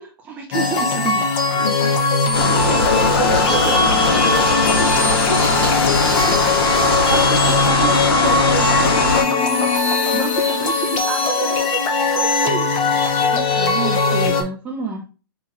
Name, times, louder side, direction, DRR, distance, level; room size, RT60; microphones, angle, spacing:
voice 1, 0.0-1.3 7.1-9.7 10.1-11.7 12.2-15.1, right 5 dB, 10° right, 0 dB, 0.3 m, -28 dB
sound 1, 0.5-14.4, left 3 dB, 25° left, 0.6 m, -19 dB
voice 2, 1.5-6.9 11.2-11.7, left 2 dB, 45° left, -2 dB, 2.0 m, -28 dB
sound 2, 2.3-9.2, left 3 dB, 70° left, 1.3 m, -20 dB
sound 3, 3.3-7.7, right 1 dB, 5° left, 1.7 m, -34 dB
6.0 x 2.8 x 2.3 m, 0.34 s
hypercardioid pair, 160°, 13 cm